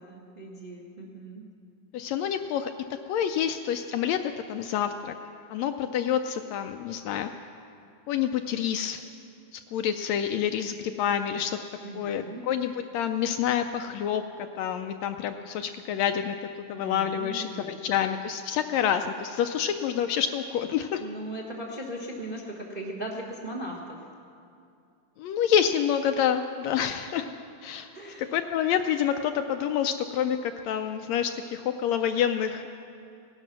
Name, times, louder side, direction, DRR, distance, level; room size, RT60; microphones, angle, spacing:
voice 1, 0.0-1.4 11.8-12.5 16.8-17.8 21.0-24.0 27.9-28.4, right 1 dB, 30° right, -1 dB, 0.8 m, -38 dB
voice 2, 1.9-2.7 3.1-4.2 4.5-5.1 5.5-7.3 8.1-9.0 9.5-11.6 11.9-14.2 14.6-21.0 25.2-27.3 27.6-27.9 28.3-32.7, left 9 dB, 80° left, 7 dB, 1.6 m, -28 dB
17.0 x 12.0 x 6.0 m, 2.4 s
omnidirectional pair, 3.4 m